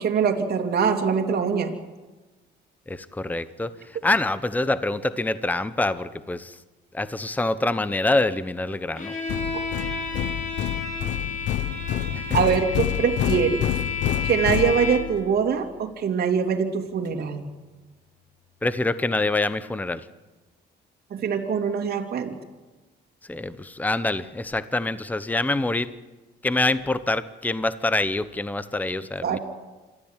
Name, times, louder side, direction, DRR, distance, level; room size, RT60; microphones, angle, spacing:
voice 1, 0.0-1.7 12.3-13.7 14.2-17.5 21.1-22.3 29.2-29.4, right 6 dB, 55° right, 1 dB, 2.9 m, -23 dB
voice 2, 2.9-6.6 6.9-9.1 12.1-12.2 18.6-20.0 23.3-25.9 26.4-29.4, left 2 dB, 10° left, 14 dB, 0.9 m, -25 dB
Bowed string instrument, 9.0-15.3, left 4 dB, 40° left, 5.9 m, -31 dB
sound 1, 9.3-15.3, left 12 dB, 75° left, 0.8 m, -28 dB
27.0 x 13.5 x 9.1 m, 1.2 s
cardioid pair, 100°, 19 cm